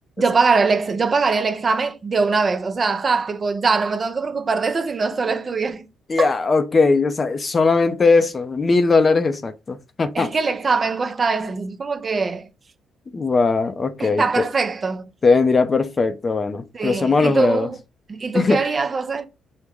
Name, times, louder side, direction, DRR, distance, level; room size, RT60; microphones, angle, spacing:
voice 1, 0.2-5.9 6.2-6.3 10.1-12.5 14.0-15.1 16.7-17.8 18.1-19.2, right 4 dB, 35° right, 0.5 m, -22 dB
voice 2, 6.1-10.3 13.1-14.5 15.2-17.7 18.3-18.6, left 4 dB, 35° left, 0.5 m, -19 dB
4.7 x 2.1 x 3.5 m
cardioid pair, 90°, 0 cm